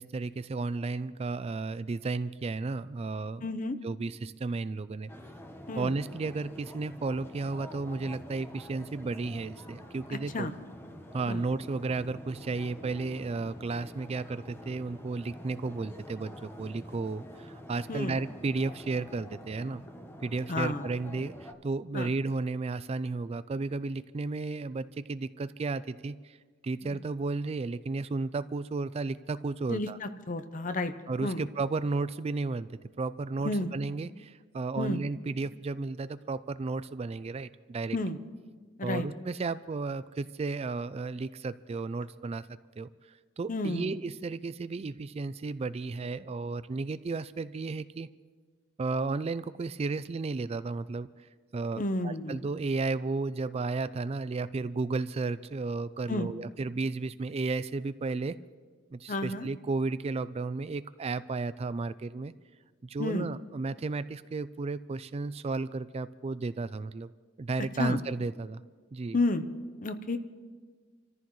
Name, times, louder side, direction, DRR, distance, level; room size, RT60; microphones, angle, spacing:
voice 1, 0.0-3.5 3.8-5.1 5.8-10.5 11.1-19.8 20.2-26.4 26.6-30.0 31.1-32.7 33.0-38.0 38.8-42.5 42.8-48.1 48.8-51.1 51.5-58.3 58.9-62.3 62.8-67.1 67.4-68.6 68.9-69.2, right 3 dB, 30° right, 14 dB, 0.3 m, -33 dB
voice 2, 3.4-3.8 5.7-5.9 10.3-10.5 11.3-11.4 17.9-18.2 20.5-20.8 21.9-22.1 26.9-27.0 29.7-30.9 31.2-31.5 33.4-33.7 34.8-35.0 37.9-38.2 38.8-39.1 43.5-43.9 51.8-52.4 56.1-56.3 59.1-59.5 63.0-63.3 67.8-68.0 69.1-69.4 69.8-70.2, left 2 dB, 40° left, 10 dB, 0.8 m, -31 dB
sound 1, 5.1-21.5, equal, 10° left, 1.0 m, -47 dB
28.5 x 14.0 x 3.2 m, 1.5 s
head